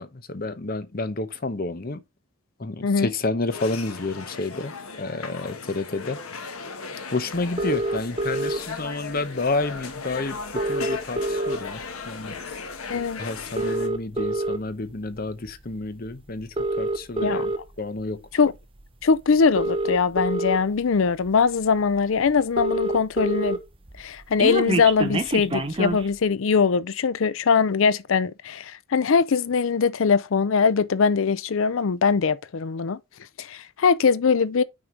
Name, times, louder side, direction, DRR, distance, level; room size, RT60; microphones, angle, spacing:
voice 1, 0.0-2.0 2.6-6.2 7.1-12.4 13.2-18.3, left 3 dB, 45° left, 0.8 m, -30 dB
sound 1, 3.5-13.9, left 5 dB, 85° left, 1.3 m, -37 dB
sound 2, 7.6-8.6 9.8-9.9 10.1-10.2 10.4-11.9 12.3-12.6 13.4-14.6 15.3-15.5 16.4-17.6 18.8-18.9 19.4-20.6 21.3-21.4 21.6-21.7 22.0-22.1 22.3-23.6 23.9-26.1, right 2 dB, 25° right, 0.9 m, -26 dB
voice 2, 19.0-23.6 24.0-33.0 33.4-34.6, left 5 dB, 65° left, 0.5 m, -21 dB
6.0 x 4.8 x 5.1 m
head